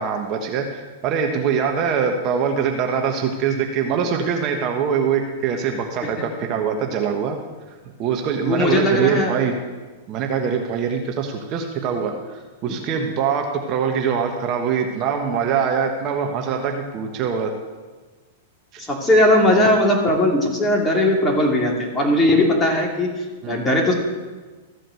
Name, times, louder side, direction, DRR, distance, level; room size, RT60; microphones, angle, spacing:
voice 1, 0.0-7.4 8.0-9.6 10.1-17.5 18.7-18.8 23.4-23.6, right 6 dB, 40° right, 3 dB, 1.3 m, -23 dB
voice 2, 8.4-9.3 12.7-12.8 18.8-23.1 23.5-23.9, left 1 dB, 15° left, -1 dB, 2.8 m, -18 dB
14.5 x 5.0 x 7.7 m, 1.3 s
hypercardioid pair, 120°, 0 cm